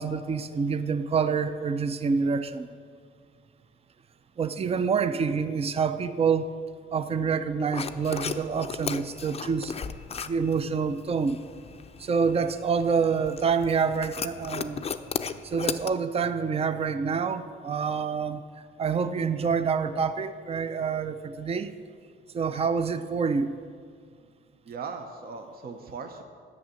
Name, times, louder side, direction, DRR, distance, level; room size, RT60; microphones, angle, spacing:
voice 1, 0.0-2.7 4.4-6.6 6.9-9.7 10.2-11.4 12.0-14.8 15.4-18.4 18.8-21.7 22.3-23.6, right 5 dB, 30° right, 11 dB, 0.5 m, -27 dB
sound 1, 7.7-15.9, left 6 dB, 30° left, 0.5 m, -36 dB
voice 2, 24.6-26.2, right 5 dB, 50° right, 5 dB, 0.9 m, -38 dB
8.5 x 6.5 x 7.6 m, 2.1 s
cardioid pair, 90°, 20 cm